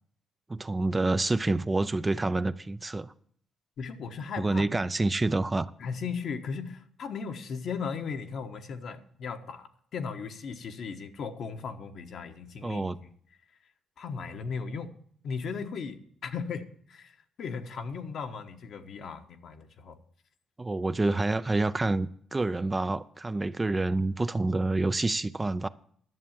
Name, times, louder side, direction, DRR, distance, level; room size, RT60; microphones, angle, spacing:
voice 1, 0.5-3.1 4.4-5.7 12.6-13.0 20.6-25.7, right 2 dB, 20° right, 0.5 m, -28 dB
voice 2, 3.8-4.8 5.8-12.9 14.0-14.9 15.2-20.0, left 5 dB, 65° left, 1.2 m, -37 dB
11.0 x 6.9 x 7.5 m
cardioid pair, 90°, 0 cm